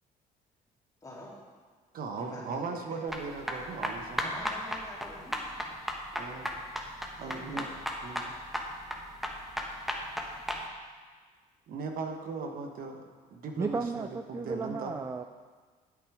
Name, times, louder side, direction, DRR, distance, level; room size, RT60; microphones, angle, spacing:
voice 1, 1.0-1.3 2.1-3.0 4.1-5.5 7.2-7.7, left 1 dB, 20° left, -6 dB, 3.5 m, -46 dB
voice 2, 1.9-4.3 6.1-6.5 7.2-7.7 8.0-8.3 11.7-14.9, right 4 dB, 60° right, 4 dB, 1.2 m, -38 dB
sound 1, 3.1-10.6, equal, ahead, 1.2 m, -35 dB
voice 3, 13.6-15.2, right 4 dB, 15° right, 8 dB, 0.4 m, -34 dB
9.8 x 8.1 x 4.9 m, 1.5 s
cardioid pair, 110°, 17 cm